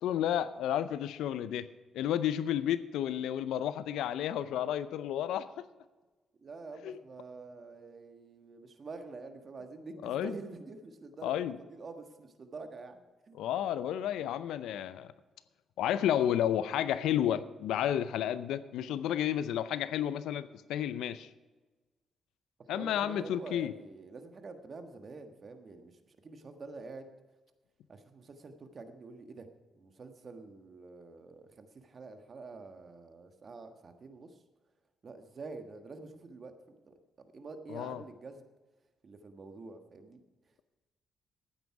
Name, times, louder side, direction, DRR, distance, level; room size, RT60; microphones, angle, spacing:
voice 1, 0.0-1.7 1.9-5.5 6.8-7.0 10.0-10.3 11.2-11.6 13.4-15.1 15.8-21.3 22.7-23.7 37.7-38.0, left 10 dB, 80° left, 14 dB, 0.6 m, -31 dB
voice 2, 6.4-11.4 11.7-13.4 22.7-27.1 27.9-29.5 29.7-34.4 35.0-38.5 39.0-40.2, right 3 dB, 50° right, 7 dB, 1.4 m, -47 dB
13.0 x 9.3 x 4.8 m, 1.2 s
supercardioid pair, 50°, 0 cm